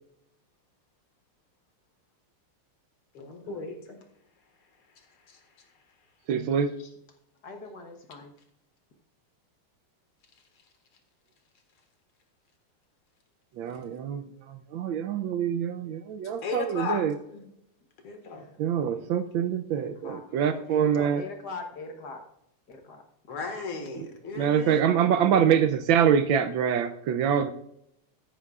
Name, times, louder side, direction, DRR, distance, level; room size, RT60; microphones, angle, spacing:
voice 1, 3.1-3.8 5.3-5.4 6.3-6.5 15.6-15.7 16.4-17.0 17.3-17.4 18.0-18.4 23.3-25.0, left 4 dB, 75° left, 5 dB, 2.5 m, -35 dB
voice 2, 6.3-6.7 13.6-17.1 18.6-21.2 24.4-27.5, right 8 dB, 75° right, 10 dB, 1.3 m, -25 dB
voice 3, 7.4-8.3 18.2-18.6 18.9-19.1 19.7-22.3 22.7-23.0, left 3 dB, 55° left, 4 dB, 1.6 m, -42 dB
14.0 x 10.0 x 2.4 m, 0.77 s
omnidirectional pair, 2.4 m